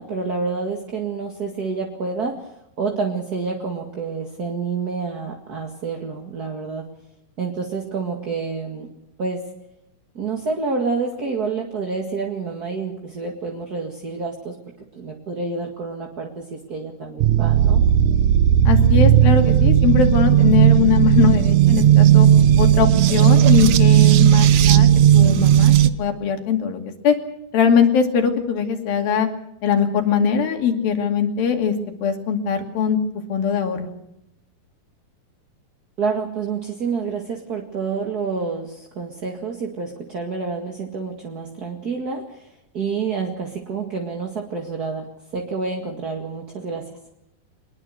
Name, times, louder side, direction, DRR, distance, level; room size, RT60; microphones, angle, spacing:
voice 1, 0.0-2.5 2.8-6.9 7.4-8.9 9.2-9.5 10.1-14.6 14.9-17.8 36.0-46.9, right 4 dB, 35° right, 1 dB, 1.8 m, -28 dB
sound 1, 17.2-25.9, right 11 dB, 70° right, 1.9 m, -14 dB
voice 2, 18.6-22.3 22.6-27.1 27.5-29.3 29.6-31.7 32.0-33.0 33.3-33.9, left 7 dB, 75° left, 5 dB, 4.2 m, -21 dB
23.5 x 21.5 x 6.5 m, 0.82 s
omnidirectional pair, 4.3 m